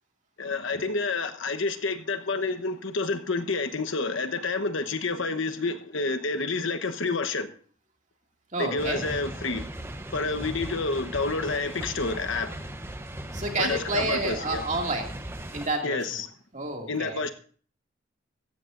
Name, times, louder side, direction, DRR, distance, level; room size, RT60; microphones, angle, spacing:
voice 1, 0.4-7.5 8.6-9.7 10.1-12.6 13.6-14.6 15.8-16.3 16.9-17.3, left 3 dB, 75° left, 1.0 m, -29 dB
voice 2, 8.5-9.0 13.3-15.1 15.5-16.1 16.5-17.2, right 2 dB, 40° right, 2.3 m, -29 dB
XY Freight train med speed, 8.8-15.7, right 1 dB, 10° right, 0.8 m, -38 dB
16.0 x 14.0 x 2.6 m
head